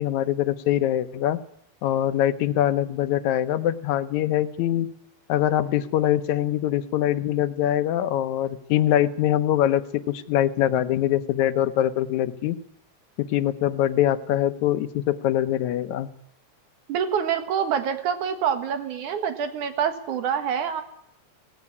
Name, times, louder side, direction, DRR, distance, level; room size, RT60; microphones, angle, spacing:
voice 1, 0.0-1.4 1.8-4.9 5.3-12.6 13.2-16.1, left 12 dB, 75° left, 12 dB, 2.2 m, -23 dB
voice 2, 16.9-20.8, right 8 dB, 85° right, 8 dB, 3.1 m, -26 dB
17.5 x 16.0 x 9.6 m, 0.74 s
omnidirectional pair, 3.4 m